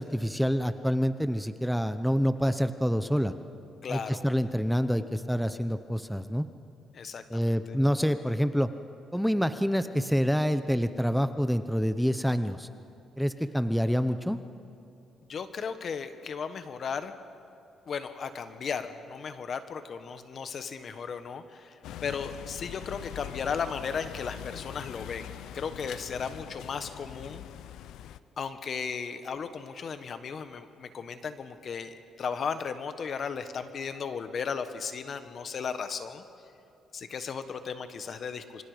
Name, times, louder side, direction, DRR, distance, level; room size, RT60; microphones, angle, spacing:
voice 1, 0.0-3.3 3.9-6.5 7.3-8.7 9.1-12.7 13.2-14.4, equal, ahead, 10 dB, 0.8 m, -27 dB
voice 2, 3.8-4.2 6.9-7.5 15.3-17.1 17.9-27.4 28.4-36.2 36.9-38.6, left 6 dB, 55° left, 9 dB, 1.5 m, -35 dB
sound 1, 21.8-28.2, left 11 dB, 85° left, 0.7 m, -43 dB
28.0 x 25.0 x 5.2 m, 2.8 s
cardioid pair, 90°, 0 cm